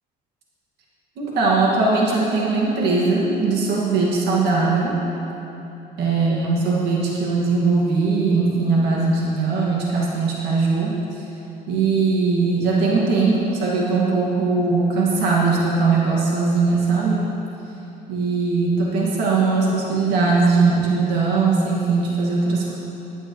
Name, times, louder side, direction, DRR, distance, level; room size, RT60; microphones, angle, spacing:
voice 1, 1.2-5.0 6.0-11.0 11.7-17.3 18.1-22.8, right 4 dB, 80° right, -4 dB, 2.1 m, -20 dB
14.5 x 9.9 x 3.2 m, 3.0 s
cardioid pair, 110°, 17 cm